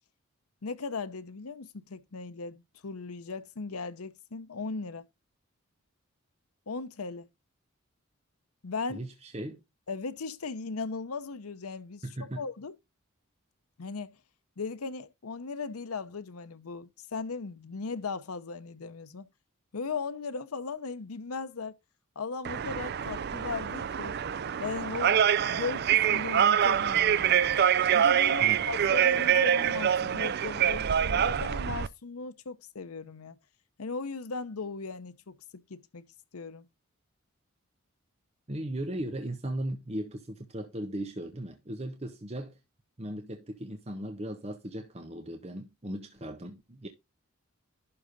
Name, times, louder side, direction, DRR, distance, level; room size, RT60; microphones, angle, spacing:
voice 1, 0.6-5.1 6.7-7.3 8.6-9.0 9.9-12.0 12.4-12.7 13.8-14.1 14.6-19.3 19.7-21.8 22.2-24.2 24.6-25.2 25.5-27.4 27.9-33.4 33.8-35.4 35.7-36.0 36.3-36.7, left 4 dB, 90° left, 0.8 m, -37 dB
voice 2, 8.9-9.6 12.0-12.4 28.4-28.7 38.5-42.6 43.0-46.9, right 1 dB, 30° right, 1.0 m, -37 dB
sound 1, 22.4-31.9, right 9 dB, 45° right, 0.4 m, -25 dB
11.5 x 3.8 x 5.2 m
head